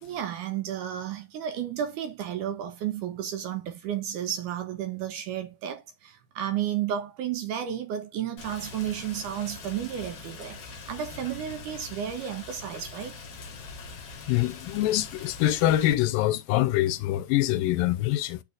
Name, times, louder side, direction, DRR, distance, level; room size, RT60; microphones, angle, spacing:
voice 1, 0.0-13.2, right 10 dB, 75° right, 2.1 m, -32 dB
Rain, 8.4-15.9, left 4 dB, 50° left, 1.6 m, -43 dB
voice 2, 14.3-18.4, left 14 dB, 80° left, 2.2 m, -24 dB
8.6 x 5.7 x 2.4 m
omnidirectional pair, 4.1 m